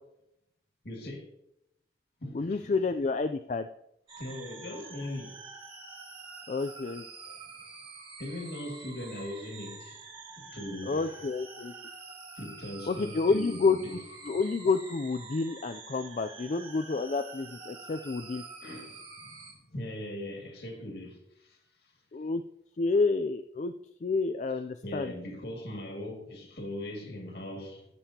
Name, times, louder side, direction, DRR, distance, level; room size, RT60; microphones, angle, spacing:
voice 1, 0.8-1.3 2.2-2.8 4.2-5.4 7.3-7.4 8.2-10.0 10.4-11.0 12.4-14.0 18.6-21.6 24.8-27.9, left 1 dB, 65° left, 2.2 m, -40 dB
voice 2, 2.3-3.7 6.5-7.1 10.9-11.7 12.9-13.8 14.3-18.4 22.1-22.4 22.8-23.7 24.0-25.1, left 4 dB, 40° left, 0.4 m, -29 dB
sound 1, 4.1-19.5, right 4 dB, 30° right, 2.1 m, -47 dB
16.0 x 7.0 x 2.8 m
head